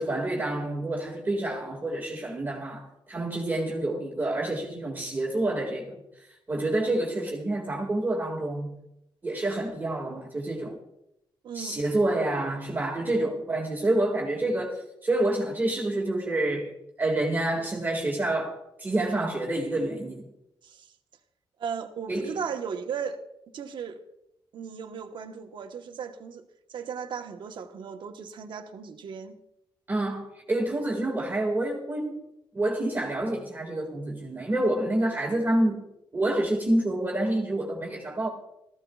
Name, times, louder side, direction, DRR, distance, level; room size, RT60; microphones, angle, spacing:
voice 1, 0.0-6.0 6.5-8.8 9.2-10.8 11.5-16.7 17.0-20.3 22.1-22.3 29.9-32.2 32.5-35.8 36.1-38.3, right 1 dB, 20° right, 2.0 m, -28 dB
voice 2, 11.4-11.8 20.6-20.9 21.6-23.2 23.5-24.0 24.5-26.4 26.7-29.3, right 6 dB, 65° right, 1.1 m, -36 dB
18.5 x 14.0 x 2.3 m
wide cardioid pair, 135°, 9 cm